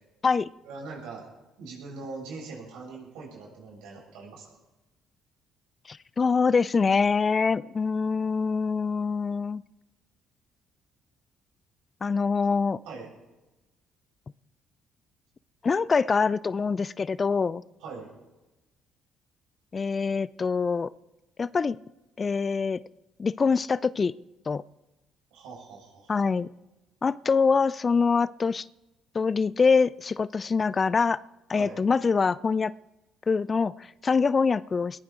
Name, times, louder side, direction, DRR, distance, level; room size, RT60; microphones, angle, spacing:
voice 1, 0.6-1.3 1.6-4.5 12.9-13.1 17.8-18.1 25.3-26.3 31.5-31.8, right 4 dB, 75° right, -2 dB, 7.6 m, -41 dB
voice 2, 5.9-9.6 12.0-12.8 15.6-17.6 19.7-20.9 21.4-21.8 22.2-22.8 23.2-24.1 24.5-24.6 26.1-26.5 27.0-28.6 29.1-31.2 31.5-32.7 33.3-35.0, left 5 dB, 40° left, 20 dB, 0.5 m, -24 dB
21.5 x 15.5 x 3.9 m, 1.0 s
hypercardioid pair, 55°, 0 cm